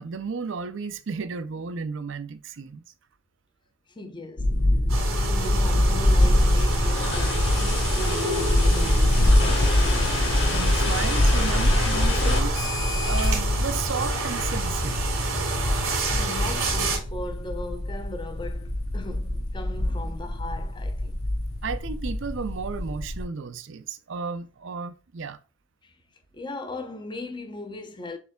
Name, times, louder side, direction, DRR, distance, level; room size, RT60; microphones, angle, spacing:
voice 1, 0.0-2.9 10.5-12.7 13.1-15.0 21.6-25.4, right 5 dB, 60° right, 0.5 m, -33 dB
voice 2, 3.9-4.5 5.1-9.5 16.1-21.2 25.8-25.9 26.3-28.2, left 2 dB, 20° left, 0.6 m, -38 dB
sound 1, 4.4-23.2, left 1 dB, 85° left, 1.2 m, -24 dB
sound 2, 4.9-17.0, right 2 dB, 85° right, 2.3 m, -29 dB
sound 3, 6.3-14.4, left 4 dB, 55° left, 2.1 m, -32 dB
6.7 x 3.3 x 2.2 m
head